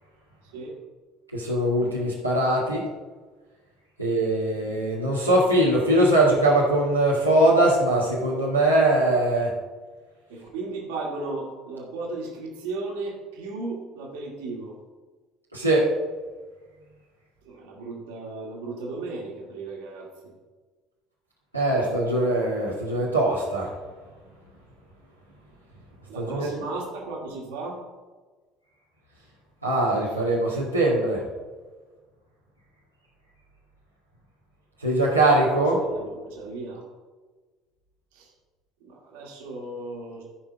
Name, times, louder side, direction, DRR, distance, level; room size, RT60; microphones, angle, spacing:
voice 1, 1.3-2.8 4.0-9.5 15.5-15.9 21.5-23.7 26.2-26.5 29.6-31.2 34.8-35.8, right 1 dB, 90° right, -7 dB, 2.0 m, -21 dB
voice 2, 10.3-14.7 17.5-20.3 26.1-27.8 35.9-36.8 38.2-38.3 38.9-40.2, right 3 dB, 65° right, -2 dB, 2.2 m, -35 dB
14.0 x 5.5 x 5.1 m, 1.4 s
figure-of-eight pair, 60°, 0 cm